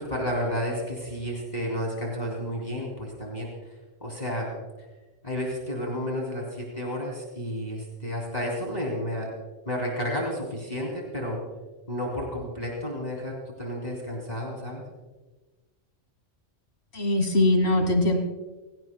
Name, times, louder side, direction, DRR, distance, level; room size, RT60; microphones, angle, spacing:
voice 1, 0.0-3.7 4.0-4.5 5.2-9.3 9.7-11.4 11.9-14.8, equal, 35° left, -2 dB, 3.0 m, -31 dB
voice 2, 16.9-18.2, left 1 dB, 55° left, 5 dB, 1.8 m, -21 dB
29.5 x 17.0 x 2.2 m, 1.2 s
omnidirectional pair, 1.3 m